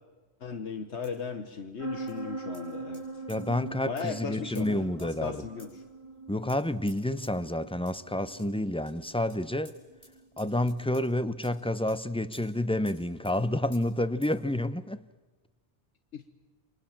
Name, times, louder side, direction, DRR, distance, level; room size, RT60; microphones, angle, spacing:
voice 1, 0.4-3.2 3.8-5.8 16.1-16.2, left 6 dB, 75° left, 1.6 m, -37 dB
sound 1, 1.0-1.3 2.1-2.2 2.5-3.0 3.3-3.4 4.0-4.1 4.5-4.7 5.0-5.3 5.6-5.7 6.5-6.6 6.9-7.0 7.2-7.3 7.9-8.0 8.4-8.5 8.9-9.0 9.3-9.4 9.6-9.7 10.0-10.1 10.4-11.1 11.4-11.5 11.9-12.0 12.3-12.5 12.9-13.0 13.2-13.4 13.7-13.8 14.2-14.4, equal, 50° left, 7.5 m, -54 dB
sound 2, 1.8-13.3, right 3 dB, 25° right, 2.4 m, -43 dB
voice 2, 3.3-5.4 6.3-9.7 10.4-15.0, left 1 dB, 5° left, 0.7 m, -29 dB
28.5 x 25.0 x 7.4 m
omnidirectional pair, 1.2 m